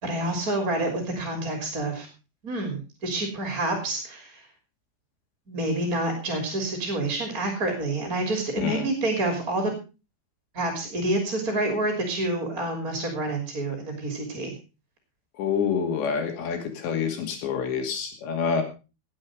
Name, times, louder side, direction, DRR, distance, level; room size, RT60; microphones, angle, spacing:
voice 1, 0.0-2.1 2.4-4.4 5.5-9.7 10.5-14.5, right 2 dB, 25° right, 4 dB, 2.9 m, -28 dB
voice 2, 15.4-18.6, left 6 dB, 80° left, 5 dB, 4.7 m, -27 dB
18.0 x 8.5 x 5.0 m, 0.32 s
omnidirectional pair, 5.0 m